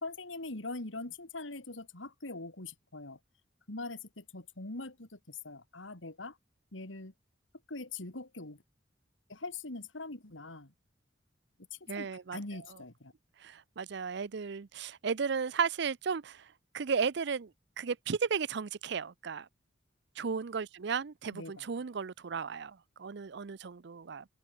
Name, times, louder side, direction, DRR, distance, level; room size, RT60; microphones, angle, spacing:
voice 1, 0.0-3.2 3.7-6.4 6.7-7.1 7.7-8.6 9.3-10.7 11.9-13.1 21.3-21.6, left 3 dB, 85° left, 2.9 m, -42 dB
voice 2, 11.9-12.4 13.4-16.5 16.7-17.5 17.8-19.5 20.2-24.2, right 6 dB, 60° right, 0.5 m, -34 dB
head